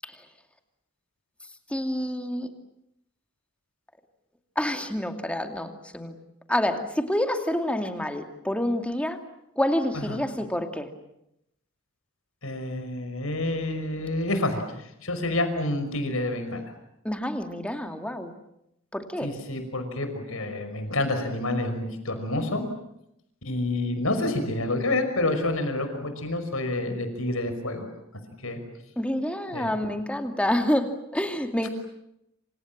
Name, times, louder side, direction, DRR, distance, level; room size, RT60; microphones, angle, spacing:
voice 1, 1.7-2.5 4.6-6.2 6.5-9.2 9.6-10.9 17.0-18.3 18.9-19.3 29.0-31.7, left 1 dB, 5° left, 6 dB, 2.5 m, -28 dB
voice 2, 12.4-14.6 15.0-16.7 19.2-22.7 23.4-27.9 28.4-28.6 29.5-29.8, left 2 dB, 75° left, 8 dB, 5.6 m, -28 dB
27.5 x 27.0 x 7.5 m, 0.80 s
head